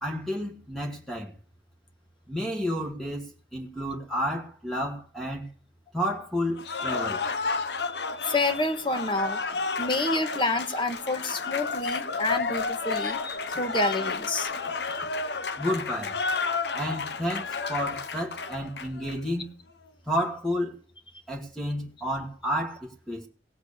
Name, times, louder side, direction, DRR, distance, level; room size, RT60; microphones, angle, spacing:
voice 1, 0.0-1.3 2.3-5.4 5.9-7.2 15.6-16.2 16.7-19.5 20.1-20.7 21.3-23.3, equal, ahead, 1.6 m, -31 dB
Cheering / Applause, 6.6-19.2, left 4 dB, 70° left, 0.9 m, -31 dB
voice 2, 7.8-9.4 9.8-14.5 14.9-15.1, left 2 dB, 30° left, 1.5 m, -29 dB
17.5 x 8.1 x 6.7 m
head